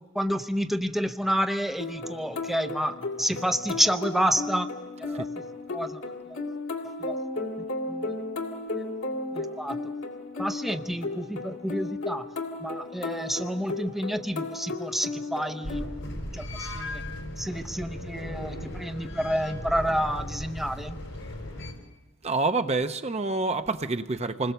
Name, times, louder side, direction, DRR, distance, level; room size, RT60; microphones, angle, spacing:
voice 1, 0.0-4.7 5.0-5.3 5.7-6.0 7.0-7.2 7.9-8.1 9.3-9.8 10.4-12.3 12.6-17.0 17.4-21.0, equal, ahead, 7 dB, 0.7 m, -29 dB
sound 1, 1.8-15.9, left 2 dB, 75° left, 2.3 m, -34 dB
sound 2, 15.6-21.7, left 1 dB, 90° left, 5.0 m, -37 dB
voice 2, 22.2-24.5, right 3 dB, 35° right, 8 dB, 0.7 m, -27 dB
27.5 x 21.0 x 6.8 m, 1.1 s
head